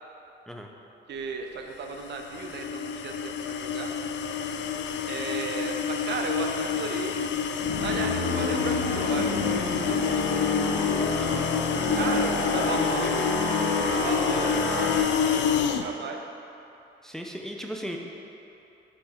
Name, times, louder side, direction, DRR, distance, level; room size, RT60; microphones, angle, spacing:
voice 1, 1.1-3.9 5.1-7.3 7.8-10.4 11.9-13.3 13.8-16.2, right 4 dB, 60° right, 4 dB, 0.6 m, -35 dB
sound 1, 1.9-15.9, left 7 dB, 65° left, 0.4 m, -28 dB
sound 2, 7.2-15.0, left 2 dB, 85° left, 1.0 m, -29 dB
voice 2, 11.8-13.3 17.0-18.0, equal, ahead, 1 dB, 0.5 m, -37 dB
6.9 x 3.4 x 4.9 m, 2.9 s
cardioid pair, 90°, 20 cm